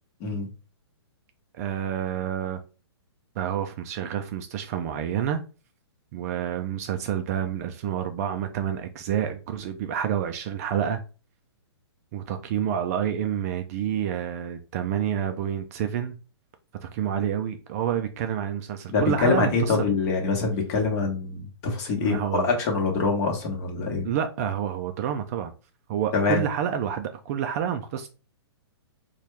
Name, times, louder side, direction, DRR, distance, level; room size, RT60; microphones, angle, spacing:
voice 1, 1.5-2.6 3.4-5.4 6.1-11.0 12.1-16.2 16.8-19.8 22.0-22.5 24.0-25.5 25.9-28.1, right 9 dB, 35° right, 0.4 m, -28 dB
voice 2, 18.9-24.0 26.1-26.4, left 4 dB, 35° left, 1.2 m, -25 dB
4.1 x 2.3 x 3.2 m
hypercardioid pair, 145°, 14 cm